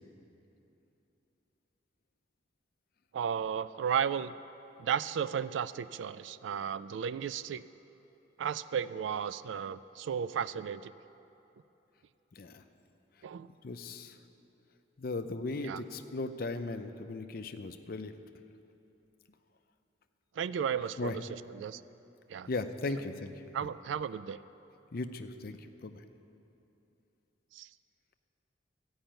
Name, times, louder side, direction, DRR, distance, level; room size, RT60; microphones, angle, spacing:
voice 1, 3.1-4.3 4.8-7.6 8.4-10.9 13.2-13.5 15.6-15.8 20.4-21.8 22.3-22.5 23.5-24.4 27.5-27.7, right 7 dB, 75° right, 15 dB, 0.3 m, -34 dB
voice 2, 12.3-12.6 13.6-14.2 15.0-18.1 21.0-21.2 22.5-23.5 24.9-26.0, left 3 dB, 50° left, 9 dB, 0.5 m, -37 dB
13.0 x 5.5 x 8.9 m, 2.9 s
head